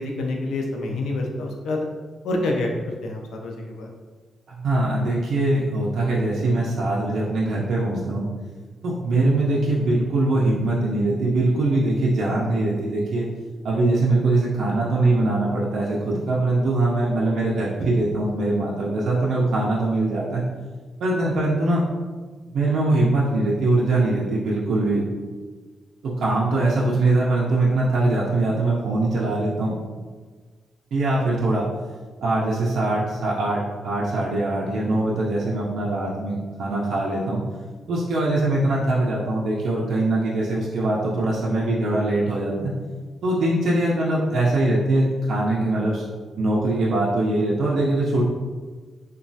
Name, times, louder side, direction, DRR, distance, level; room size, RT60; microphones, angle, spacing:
voice 1, 0.0-1.9 2.2-2.7 3.0-3.9, left 2 dB, 85° left, 1 dB, 0.4 m, -27 dB
voice 2, 4.5-8.3 8.8-13.3 13.6-20.4 21.0-21.8 22.5-25.0 26.0-29.7 30.9-31.7 32.2-37.4 37.9-42.7 43.2-46.0 46.3-48.2, right 2 dB, 60° right, -5 dB, 0.4 m, -22 dB
3.0 x 2.2 x 2.6 m, 1.4 s
wide cardioid pair, 180°, 0 cm